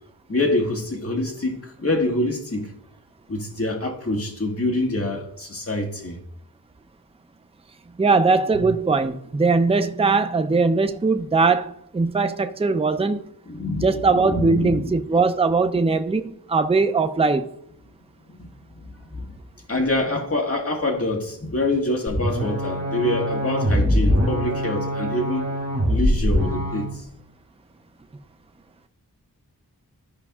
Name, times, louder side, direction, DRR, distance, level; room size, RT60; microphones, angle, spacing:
voice 1, 0.3-2.7 3.3-6.2 8.5-8.6 13.5-14.9 18.4-18.5 18.8-19.3 19.7-25.5 25.9-27.0, left 2 dB, 40° left, 1.6 m, -26 dB
voice 2, 8.0-13.2 13.8-17.5, right 4 dB, 15° right, 0.5 m, -20 dB
sound 1, 22.1-26.9, equal, 40° right, 3.2 m, -23 dB
13.0 x 5.3 x 2.4 m
wide cardioid pair, 65°, 38 cm